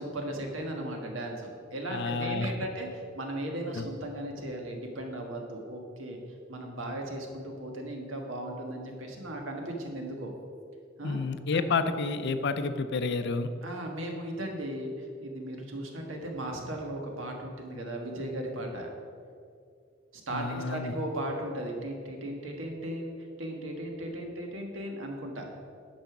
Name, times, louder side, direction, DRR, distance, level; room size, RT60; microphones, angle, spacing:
voice 1, 0.0-6.2 6.5-10.3 11.0-11.2 11.5-11.6 13.6-18.9 20.1-25.4, right 1 dB, 75° right, 2 dB, 1.6 m, -36 dB
voice 2, 1.9-2.5 3.8-3.9 11.0-13.5 20.3-20.9, left 4 dB, 60° left, 10 dB, 0.6 m, -30 dB
10.5 x 5.6 x 6.0 m, 2.3 s
head